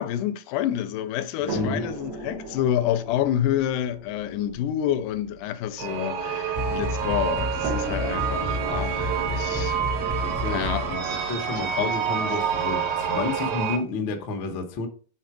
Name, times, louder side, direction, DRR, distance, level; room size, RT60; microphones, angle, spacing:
voice 1, 0.0-10.1 10.5-12.3, left 11 dB, 85° left, 2.1 m, -28 dB
voice 2, 1.5-1.9 9.6-9.7 10.2-10.6 11.3-14.9, left 3 dB, 65° left, 1.2 m, -30 dB
sound 1, 1.5-6.7 7.6-11.6 12.6-12.7 13.1-13.2, right 2 dB, 90° right, 0.9 m, -38 dB
sound 2, 5.8-13.8, right 8 dB, 70° right, 1.7 m, -28 dB
sound 3, 6.6-11.0, left 2 dB, 20° right, 0.6 m, -31 dB
6.3 x 3.8 x 4.7 m
omnidirectional pair, 3.7 m